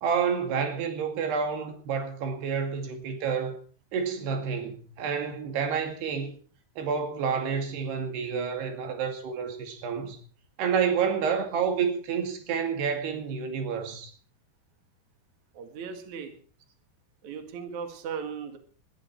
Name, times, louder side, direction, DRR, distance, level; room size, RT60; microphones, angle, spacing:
voice 1, 0.0-3.6 3.9-6.4 6.8-10.2 10.6-14.1, right 6 dB, 90° right, 6 dB, 4.4 m, -29 dB
voice 2, 15.5-16.4 17.2-18.6, right 6 dB, 50° right, 6 dB, 3.2 m, -37 dB
20.5 x 13.5 x 4.7 m, 0.43 s
omnidirectional pair, 4.6 m